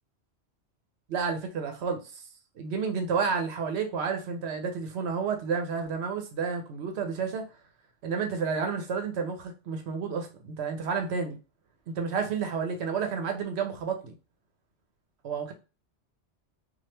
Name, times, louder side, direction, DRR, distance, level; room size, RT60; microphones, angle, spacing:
voice 1, 1.1-2.2 2.6-7.4 8.0-11.4 11.9-14.1 15.2-15.5, right 5 dB, 70° right, 0.9 m, -30 dB
2.9 x 2.4 x 3.2 m
omnidirectional pair, 1.2 m